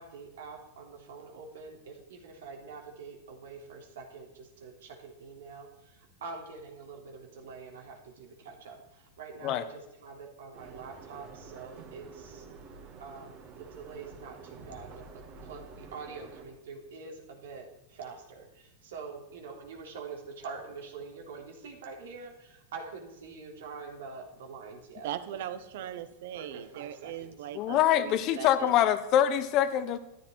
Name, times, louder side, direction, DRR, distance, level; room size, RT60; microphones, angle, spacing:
voice 1, 0.0-12.5 13.0-25.1 25.8-25.9 26.3-27.4, right 4 dB, 80° right, 2 dB, 3.5 m, -45 dB
sound 1, 10.5-16.4, right 4 dB, 40° right, 2.9 m, -49 dB
voice 2, 25.0-28.7, right 11 dB, 60° right, 12 dB, 1.2 m, -39 dB
voice 3, 27.5-30.0, left 11 dB, 30° left, 12 dB, 1.0 m, -24 dB
13.5 x 13.0 x 4.7 m, 0.93 s
supercardioid pair, 170°, 0 cm